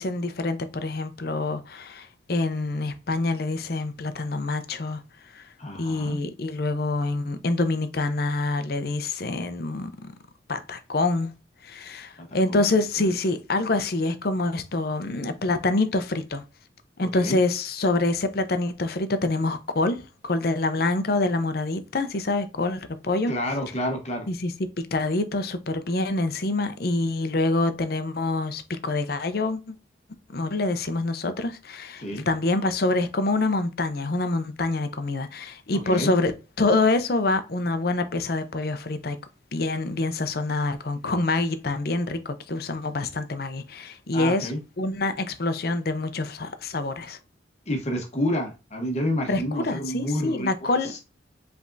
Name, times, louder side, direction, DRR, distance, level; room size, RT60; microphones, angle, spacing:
voice 1, 0.0-5.0 5.3-5.5 5.8-10.1 10.5-11.3 11.6-16.4 17.0-23.3 24.3-24.5 24.9-29.7 30.3-39.2 39.5-44.5 44.8-47.2 49.3-50.9, left 2 dB, 55° left, 0.6 m, -26 dB
voice 2, 5.6-6.2 12.2-12.6 13.0-13.1 17.0-17.4 23.3-24.3 32.0-32.2 35.8-36.1 44.1-44.6 47.7-51.0, left 1 dB, 35° left, 1.1 m, -29 dB
5.2 x 3.4 x 2.6 m
head